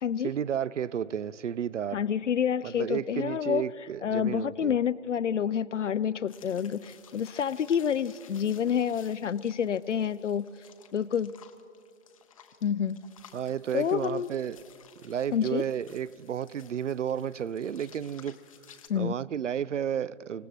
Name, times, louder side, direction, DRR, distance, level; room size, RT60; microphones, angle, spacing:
voice 1, 0.2-2.0 2.6-4.8 13.3-14.6 15.0-18.4 18.9-20.5, right 9 dB, 75° right, 0.5 m, -32 dB
voice 2, 1.9-3.6 4.0-10.4 10.9-11.3 12.6-13.0 13.7-14.3 15.3-15.6 18.9-19.2, left 8 dB, 75° left, 0.5 m, -28 dB
sound 1, 6.3-18.9, left 8 dB, 30° left, 0.8 m, -56 dB
26.0 x 17.0 x 3.1 m
figure-of-eight pair, 145°, 37 cm